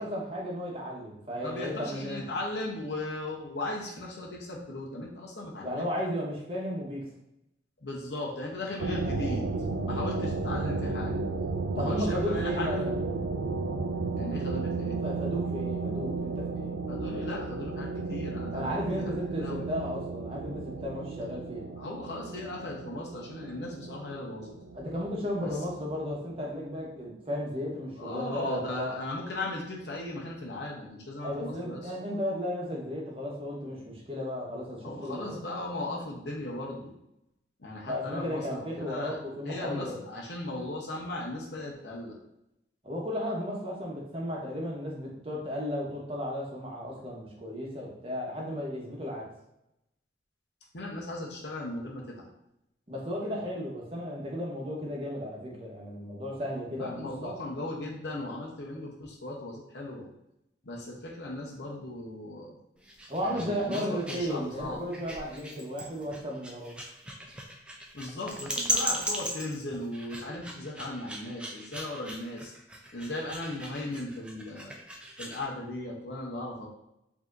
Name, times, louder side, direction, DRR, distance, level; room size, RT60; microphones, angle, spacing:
voice 1, 0.0-2.3 5.6-7.0 11.8-13.0 15.0-16.7 17.1-17.3 18.5-21.6 24.7-29.0 31.2-35.4 37.9-40.0 42.8-49.2 52.9-57.3 63.1-66.7, equal, 30° right, -3 dB, 1.0 m, -34 dB
voice 2, 1.4-5.9 7.8-9.5 9.9-11.2 11.7-12.8 14.2-15.0 16.9-19.6 21.8-24.5 25.4-25.6 28.0-31.9 34.8-36.9 37.6-39.2 39.4-42.2 50.7-52.3 56.8-60.1 60.6-62.6 63.2-64.8 67.9-72.5 72.9-74.7 75.2-76.7, left 2 dB, 70° left, -2 dB, 0.8 m, -37 dB
sound 1, 8.8-26.2, right 3 dB, 80° right, 0.4 m, -33 dB
sound 2, 62.8-75.5, right 1 dB, 5° right, 0.4 m, -37 dB
4.8 x 2.8 x 2.5 m, 0.83 s
head